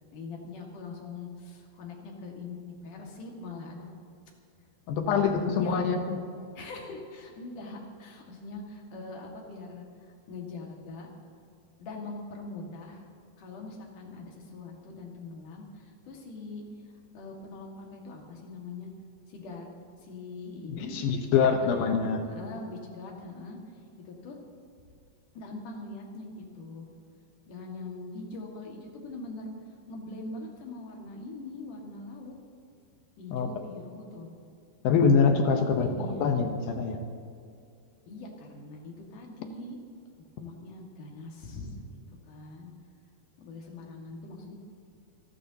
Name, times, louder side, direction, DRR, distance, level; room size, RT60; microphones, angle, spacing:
voice 1, 0.1-3.9 5.0-5.8 6.5-9.9 10.3-11.1 11.8-13.1 13.4-16.6 17.1-18.9 19.3-19.7 20.0-21.0 21.3-21.7 22.2-23.6 24.0-24.4 25.3-26.9 27.5-29.5 29.9-32.3 33.2-34.3 35.5-36.3 38.1-39.8 40.4-42.0 42.2-42.7 43.4-44.6, left 3 dB, 55° left, 0 dB, 3.2 m, -42 dB
voice 2, 4.9-6.2 20.7-22.2 33.3-33.5 34.8-37.0, left 5 dB, 70° left, 5 dB, 2.5 m, -25 dB
29.0 x 12.5 x 2.9 m, 2.4 s
omnidirectional pair, 4.8 m